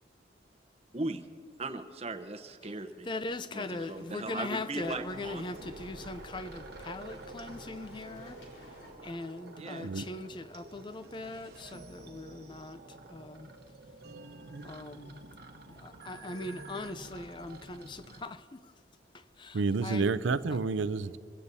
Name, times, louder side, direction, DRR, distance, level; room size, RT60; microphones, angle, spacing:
voice 1, 0.9-1.3 1.6-3.1 3.5-5.4 9.6-9.8, right 2 dB, 35° right, 0.8 m, -38 dB
voice 2, 3.0-8.4 9.0-13.5 14.6-15.2 15.6-18.7 19.1-20.1, left 2 dB, 25° left, 0.5 m, -40 dB
sound 1, 3.6-8.9, left 1 dB, 85° left, 4.1 m, -55 dB
sound 2, 4.8-18.2, right 2 dB, 55° right, 1.0 m, -49 dB
voice 3, 9.7-10.1 14.4-14.7 19.5-21.2, right 4 dB, 90° right, 0.5 m, -30 dB
25.5 x 16.5 x 2.7 m
head